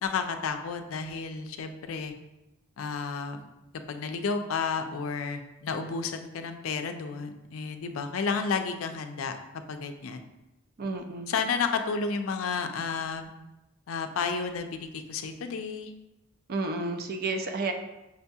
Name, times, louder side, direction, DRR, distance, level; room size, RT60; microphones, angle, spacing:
voice 1, 0.0-2.1 2.8-3.5 3.9-9.4 9.7-10.2 11.3-13.3 13.9-15.9, left 5 dB, 80° left, 7 dB, 0.4 m, -31 dB
voice 2, 10.8-11.3 16.5-17.7, right 3 dB, 50° right, 5 dB, 0.4 m, -31 dB
6.1 x 2.7 x 2.3 m, 0.95 s
head